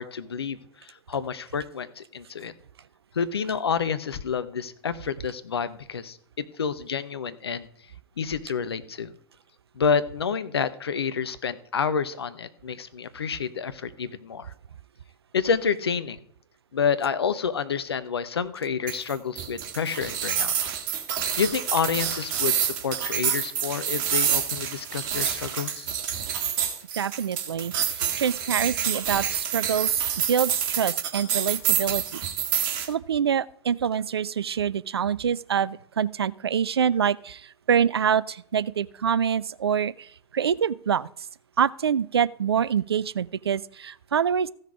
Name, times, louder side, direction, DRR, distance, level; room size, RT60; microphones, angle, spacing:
voice 1, 0.0-2.5 3.1-7.7 8.2-9.1 9.8-14.5 15.3-16.2 16.7-20.5 21.4-25.9, left 6 dB, 75° left, 13 dB, 0.9 m, -29 dB
sound 1, 18.9-32.9, right 8 dB, 55° right, 1.8 m, -27 dB
voice 2, 27.0-30.0 30.3-32.2 32.9-41.1 41.6-44.5, right 8 dB, 75° right, 20 dB, 0.4 m, -26 dB
15.0 x 6.5 x 4.8 m, 0.62 s
figure-of-eight pair, 85°, 13 cm